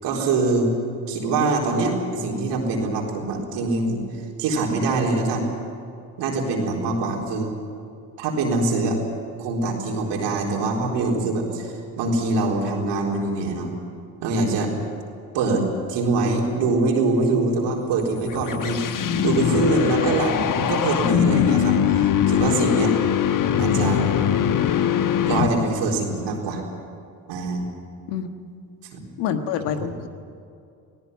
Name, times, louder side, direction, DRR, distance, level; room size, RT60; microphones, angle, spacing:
voice 1, 0.0-0.7 1.1-4.0 4.4-5.5 6.2-7.5 8.2-9.0 9.4-13.7 14.2-14.7 15.3-18.8 19.2-22.9 23.6-24.1 25.2-26.6 27.3-27.6 28.9-29.0 29.7-29.9, right 3 dB, 80° right, 0 dB, 4.2 m, -24 dB
sound 1, 18.0-25.8, left 9 dB, 50° left, 1.2 m, -21 dB
voice 2, 29.2-30.1, left 8 dB, 85° left, 7 dB, 1.5 m, -26 dB
18.0 x 17.5 x 9.5 m, 2.4 s
supercardioid pair, 65°, 41 cm